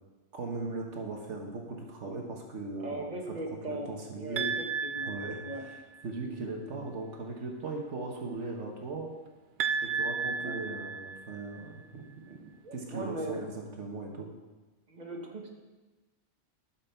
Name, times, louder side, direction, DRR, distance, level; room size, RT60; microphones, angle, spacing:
voice 1, 0.3-3.4 3.7-4.6 5.0-5.8 6.0-9.1 9.8-13.5 13.8-14.3, right 3 dB, 70° right, 1 dB, 1.5 m, -38 dB
voice 2, 2.8-4.6 4.9-5.1 5.4-5.6 10.4-10.6 12.6-13.5 14.9-15.5, right 1 dB, 35° right, 1 dB, 1.3 m, -39 dB
sound 1, 4.4-6.0 9.6-11.6, right 5 dB, 55° right, 0.6 m, -33 dB
12.5 x 5.9 x 4.4 m, 1.2 s
omnidirectional pair, 1.3 m